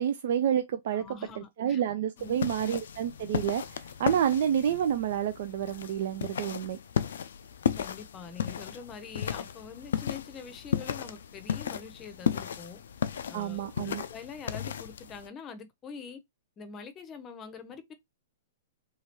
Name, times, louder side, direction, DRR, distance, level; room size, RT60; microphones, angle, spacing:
voice 1, 0.0-1.0 1.4-6.8 13.3-14.0, right 9 dB, 60° right, 0.4 m, -29 dB
voice 2, 0.9-1.8 2.2-2.5 7.8-12.8 13.3-16.2 16.6-17.9, left 6 dB, 25° left, 0.7 m, -44 dB
sound 1, 2.2-15.3, left 8 dB, 70° left, 0.3 m, -35 dB
2.9 x 2.3 x 2.9 m
hypercardioid pair, 115°, 0 cm